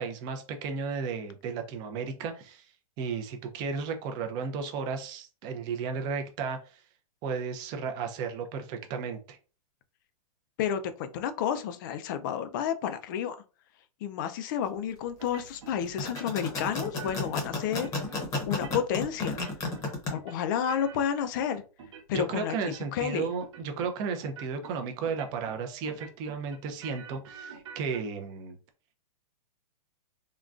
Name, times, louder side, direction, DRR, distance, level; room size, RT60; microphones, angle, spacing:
voice 1, 0.0-2.7 3.0-6.8 7.2-9.4 22.1-28.6, right 5 dB, 20° right, 5 dB, 0.5 m, -34 dB
voice 2, 10.6-13.4 14.0-17.9 18.5-19.4 20.1-21.6 22.1-23.3, left 8 dB, 35° left, 10 dB, 0.4 m, -31 dB
sound 1, 15.2-15.8 16.0-17.4 17.7-18.2 18.5-19.0 19.3-19.9 20.1-22.3 22.6-23.1 23.4-23.9 24.2-24.7 25.1-25.6 25.9-28.0, right 6 dB, 50° right, 0.9 m, -47 dB
sound 2, 15.8-20.1, left 3 dB, 15° left, 0.8 m, -32 dB
3.7 x 2.2 x 2.4 m, 0.34 s
hypercardioid pair, 155°, 19 cm